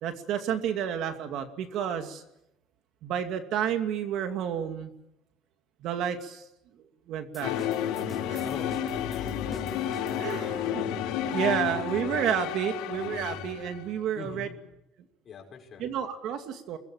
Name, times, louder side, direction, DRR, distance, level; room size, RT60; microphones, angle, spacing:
voice 1, 0.0-2.2 3.0-4.9 5.8-6.4 6.7-7.7 8.3-8.4 10.2-10.8 11.3-14.5 15.8-16.8, right 9 dB, 60° right, 7 dB, 2.5 m, -30 dB
sound 1, 7.3-10.8, left 2 dB, 10° left, 2.9 m, -49 dB
sound 2, 7.4-14.0, left 9 dB, 80° left, 3.6 m, -31 dB
voice 2, 8.4-9.6 12.1-12.2 14.1-14.6 15.2-15.9, left 6 dB, 35° left, 1 dB, 6.0 m, -42 dB
24.5 x 20.5 x 8.9 m, 0.84 s
cardioid pair, 140°, 0 cm